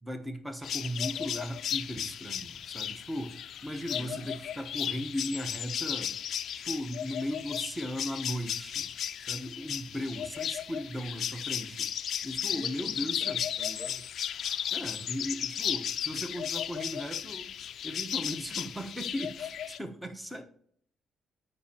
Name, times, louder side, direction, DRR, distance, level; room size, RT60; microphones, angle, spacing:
voice 1, 0.0-6.1 6.5-8.9 9.2-11.9 12.2-13.4 14.7-17.5 17.8-20.4, equal, 5° right, 5 dB, 1.1 m, -37 dB
sound 1, 0.6-19.8, left 9 dB, 65° left, 0.4 m, -35 dB
voice 2, 3.8-4.3 12.5-14.1, right 2 dB, 45° right, 7 dB, 1.0 m, -48 dB
13.5 x 5.4 x 2.9 m, 0.64 s
cardioid pair, 95°, 0 cm